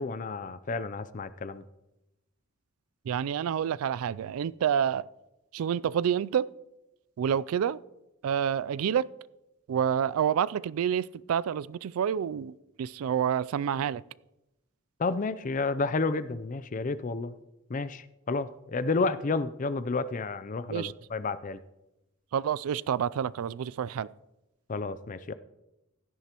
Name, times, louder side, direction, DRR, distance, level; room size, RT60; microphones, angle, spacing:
voice 1, 0.0-1.6 15.0-17.3 17.7-21.6 24.7-25.3, left 3 dB, 40° left, 0.5 m, -31 dB
voice 2, 3.1-5.1 5.5-6.5 7.2-7.8 8.2-9.1 9.7-14.0 20.7-20.9 22.3-24.1, right 8 dB, 85° right, 0.3 m, -28 dB
16.5 x 11.5 x 3.0 m
head